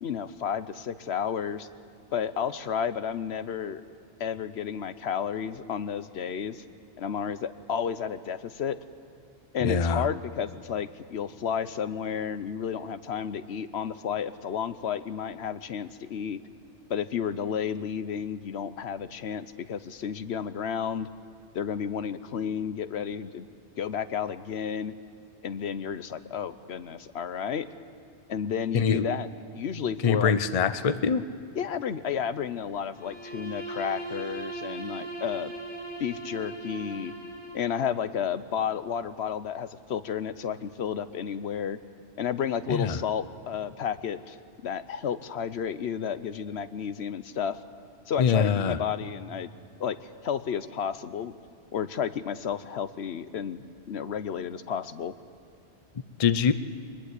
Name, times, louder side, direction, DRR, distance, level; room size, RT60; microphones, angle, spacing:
voice 1, 0.0-1.7 2.1-3.8 4.2-6.6 7.0-8.8 9.5-16.4 16.9-21.1 21.5-23.5 23.8-24.9 25.4-27.7 28.3-29.3 29.5-30.4 31.6-35.5 36.0-37.1 37.5-41.8 42.2-44.4 44.6-47.6 48.1-49.5 49.8-50.0 50.2-51.3 51.7-55.1, left 7 dB, 70° left, 13 dB, 1.0 m, -32 dB
voice 2, 9.6-10.1 28.7-29.1 30.0-31.2 42.7-43.0 48.2-48.8 56.2-56.5, left 6 dB, 40° left, 12 dB, 0.7 m, -24 dB
Bowed string instrument, 32.9-37.8, right 2 dB, 90° left, 6.2 m, -39 dB
23.5 x 20.5 x 8.2 m, 2.4 s
omnidirectional pair, 1.1 m